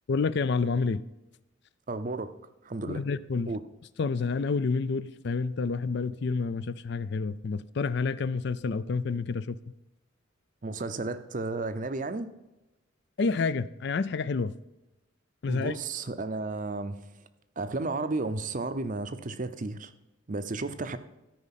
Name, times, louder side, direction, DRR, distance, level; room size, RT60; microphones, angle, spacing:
voice 1, 0.1-1.0 2.9-3.5 4.0-9.6 13.2-14.5 15.4-15.7, left 4 dB, 55° left, 0.4 m, -29 dB
voice 2, 1.9-2.3 2.6-3.0 3.5-3.6 10.6-12.3 15.5-17.0 17.6-19.9 20.3-21.0, right 3 dB, 40° right, 0.6 m, -33 dB
13.5 x 5.1 x 5.7 m
head